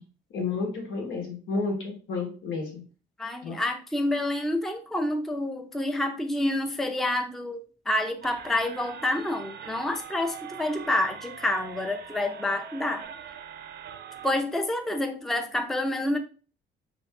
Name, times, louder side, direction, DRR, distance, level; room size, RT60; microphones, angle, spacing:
voice 1, 0.3-2.8 3.4-3.6, left 4 dB, 80° left, 1 dB, 1.1 m, -31 dB
voice 2, 3.2-13.1 14.2-16.2, left 1 dB, ahead, 5 dB, 0.4 m, -28 dB
sound 1, 8.2-14.3, right 7 dB, 60° right, 0.5 m, -42 dB
2.6 x 2.5 x 3.3 m, 0.38 s
cardioid pair, 90°, 20 cm